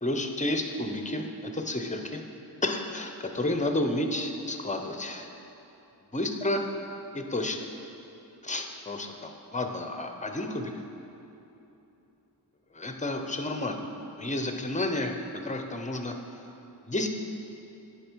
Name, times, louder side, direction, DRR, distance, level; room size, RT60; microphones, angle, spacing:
voice 1, 0.0-2.2 2.6-5.3 6.1-6.6 7.1-7.7 8.4-10.7 12.7-13.8 14.2-15.1 15.4-16.1 16.8-17.1, left 1 dB, 20° left, 4 dB, 0.6 m, -31 dB
10.0 x 5.0 x 4.5 m, 2.9 s
wide cardioid pair, 60°, 42 cm